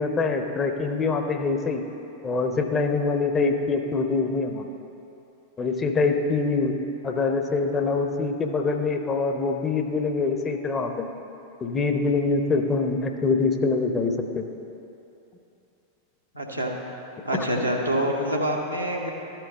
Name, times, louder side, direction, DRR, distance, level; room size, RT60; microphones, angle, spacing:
voice 1, 0.0-1.8 2.2-4.7 5.6-6.8 7.0-11.1 11.6-14.5 17.3-17.4, left 4 dB, 20° left, 5 dB, 0.7 m, -24 dB
voice 2, 16.3-16.7 17.2-19.1, equal, 90° right, -2 dB, 1.1 m, -26 dB
12.5 x 4.5 x 5.4 m, 2.8 s
figure-of-eight pair, 90°, 0 cm